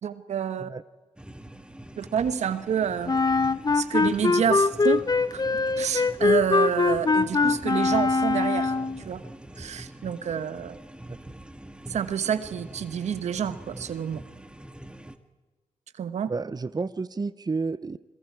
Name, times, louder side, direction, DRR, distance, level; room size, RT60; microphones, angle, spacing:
voice 1, 0.0-0.7 2.0-3.2 3.7-5.0 5.3-5.4 5.8-8.8 9.0-9.2 9.6-10.8 11.9-14.2 16.0-16.3, right 8 dB, 75° right, 12 dB, 1.2 m, -28 dB
sound 1, 1.2-15.2, right 1 dB, 10° right, 1.9 m, -44 dB
Wind instrument woodwind instrument, 3.1-9.0, left 4 dB, 35° left, 0.8 m, -23 dB
voice 2, 16.3-18.0, right 4 dB, 35° right, 15 dB, 0.7 m, -31 dB
27.0 x 21.5 x 4.7 m, 1.3 s
supercardioid pair, 40°, 12 cm